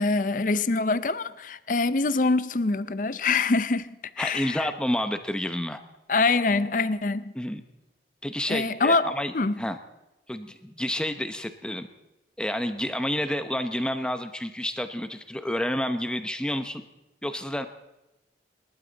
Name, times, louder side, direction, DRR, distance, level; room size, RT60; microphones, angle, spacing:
voice 1, 0.0-4.7 6.1-7.3 8.5-9.5, left 3 dB, 45° left, 0.6 m, -25 dB
voice 2, 4.2-5.8 7.3-7.6 8.2-9.8 10.3-11.9 12.4-16.8 17.2-17.7, left 1 dB, 5° left, 0.8 m, -29 dB
27.5 x 12.0 x 4.0 m
head